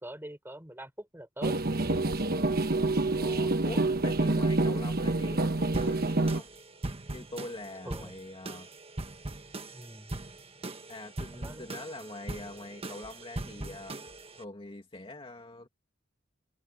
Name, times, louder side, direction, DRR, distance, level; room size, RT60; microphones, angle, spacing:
voice 1, 0.0-1.6 7.9-8.1 9.7-10.1 11.3-11.7, right 1 dB, 10° right, 5.6 m, -44 dB
sound 1, 1.4-6.4, right 2 dB, 50° right, 1.2 m, -27 dB
voice 2, 1.7-2.5 3.2-6.5 7.1-8.7 10.9-14.0 14.4-15.7, left 2 dB, 30° left, 2.5 m, -44 dB
sound 2, 5.7-14.4, right 2 dB, 30° right, 1.4 m, -41 dB
head